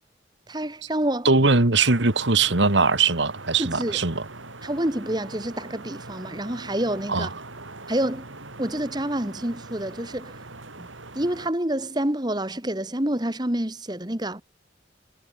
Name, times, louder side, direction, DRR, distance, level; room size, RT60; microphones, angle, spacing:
voice 1, 0.5-1.3 3.6-4.0 4.6-7.3 7.9-8.3 8.6-10.3 10.8-10.9 11.1-14.4, right 1 dB, 20° right, 1.8 m, -28 dB
voice 2, 1.2-4.3 7.1-7.3, right 3 dB, 70° right, 2.0 m, -20 dB
sound 1, 1.7-11.5, right 2 dB, 90° right, 5.5 m, -42 dB
head